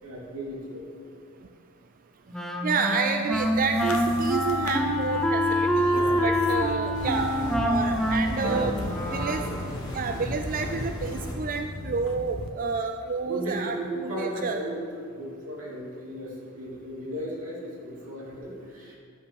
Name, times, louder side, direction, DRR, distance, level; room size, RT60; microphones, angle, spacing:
voice 1, 0.0-1.1 5.9-6.7 8.4-9.5 13.2-14.8 15.1-19.0, right 1 dB, 80° right, -4 dB, 2.9 m, -35 dB
Wind instrument woodwind instrument, 2.3-9.7, equal, ahead, 0.7 m, -26 dB
voice 2, 2.6-8.8 9.1-9.4 9.9-13.8 14.0-14.6, right 5 dB, 40° right, 6 dB, 0.4 m, -29 dB
sound 1, 3.3-12.5, left 2 dB, 70° left, 0.9 m, -37 dB
sound 2, 6.9-11.3, left 1 dB, 20° left, 2.5 m, -36 dB
11.5 x 5.6 x 6.5 m, 2.3 s
head